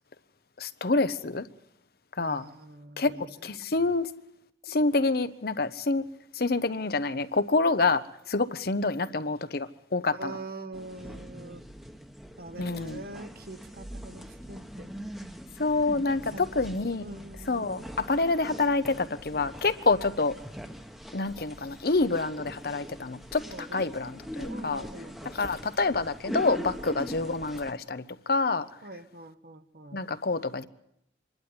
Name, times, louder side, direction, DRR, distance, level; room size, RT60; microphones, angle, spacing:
voice 1, 0.6-1.5 2.2-2.4 3.0-3.1 3.4-4.1 4.7-6.1 6.4-10.4 12.6-13.0 15.6-17.0 17.5-20.4 21.1-23.4 23.7-24.8 25.2-28.7 29.9-30.7, left 3 dB, 55° left, 0.8 m, -27 dB
voice 2, 2.2-3.8 10.1-11.6 12.4-14.9 16.3-16.6 17.0-17.9 23.5-23.9 24.5-25.5 28.8-30.0, right 2 dB, 55° right, 1.1 m, -44 dB
sound 1, 10.7-27.7, equal, ahead, 1.0 m, -42 dB
25.5 x 12.0 x 9.5 m
head